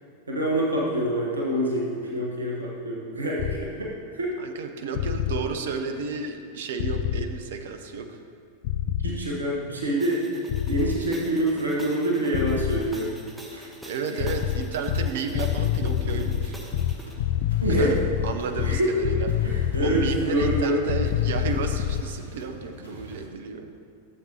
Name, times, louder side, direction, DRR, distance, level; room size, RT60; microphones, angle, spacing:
voice 1, 0.3-4.3 9.0-10.2 10.6-13.2 13.5-13.7 14.1-14.3 17.6-18.0 18.6-18.9 19.4-20.9, right 1 dB, 75° right, -3 dB, 1.1 m, -26 dB
sound 1, 3.4-3.6 4.9-5.4 6.8-7.3 8.6-9.2 10.5-11.0 12.3-12.8 14.2-22.1, left 11 dB, 50° left, 0.3 m, -26 dB
voice 2, 4.4-8.2 13.8-16.6 17.7-19.3 19.8-23.7, right 5 dB, 55° right, 6 dB, 0.7 m, -32 dB
sound 2, 10.0-17.1, right 1 dB, 5° right, 1.1 m, -43 dB
sound 3, 16.2-23.3, right 1 dB, 75° left, 1.5 m, -45 dB
12.5 x 7.5 x 2.9 m, 2.5 s
figure-of-eight pair, 90°, 0 cm